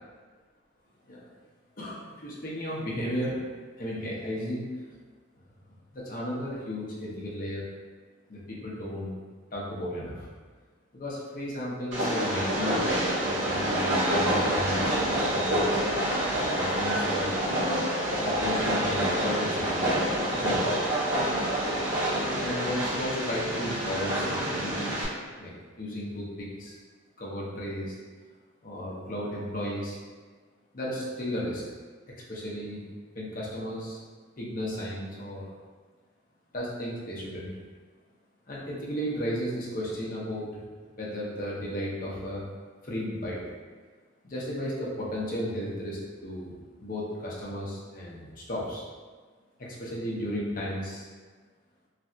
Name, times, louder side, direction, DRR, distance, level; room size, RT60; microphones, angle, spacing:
voice 1, 1.8-3.4 3.8-4.7 5.7-7.6 8.3-9.2 9.5-10.3 10.9-12.8 13.1-15.0 15.3-15.8 16.4-17.3 18.1-19.9 20.3-20.8 22.4-25.1 25.4-26.8 27.2-28.0 28.6-30.0 30.7-31.6 32.3-32.8 33.1-34.0 34.4-35.5 36.5-37.5 38.5-40.6 41.0-42.5 42.8-43.4 44.2-48.8 49.6-51.1, equal, 40° left, -5 dB, 0.6 m, -34 dB
Train, 11.9-25.0, right 1 dB, 75° right, 1.5 m, -27 dB
3.2 x 2.7 x 2.4 m, 1.5 s
head